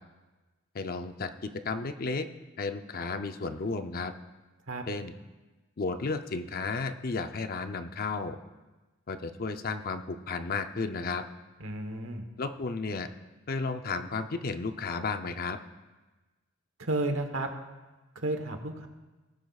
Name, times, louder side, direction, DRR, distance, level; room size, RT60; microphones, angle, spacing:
voice 1, 0.7-2.3 2.6-4.1 4.9-5.1 5.8-8.4 9.1-11.2 12.4-13.1 13.5-15.6, left 4 dB, 45° left, 8 dB, 0.6 m, -33 dB
voice 2, 11.6-12.2 16.8-17.5 18.2-18.9, right 2 dB, 80° right, 5 dB, 1.2 m, -32 dB
18.0 x 9.3 x 2.4 m, 1.2 s
head